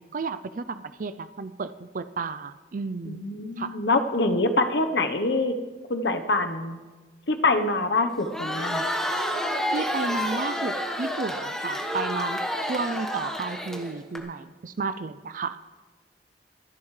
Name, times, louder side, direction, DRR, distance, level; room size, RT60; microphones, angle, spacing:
voice 1, 0.0-3.2 3.6-3.8 9.7-12.4 12.7-15.6, right 4 dB, 50° right, 13 dB, 0.5 m, -32 dB
voice 2, 3.1-5.5 5.9-6.8 7.3-8.9, left 2 dB, 80° left, 7 dB, 1.0 m, -25 dB
Crowd, 8.2-14.2, equal, 5° left, 1.3 m, -29 dB
26.0 x 11.0 x 3.3 m, 1.3 s
head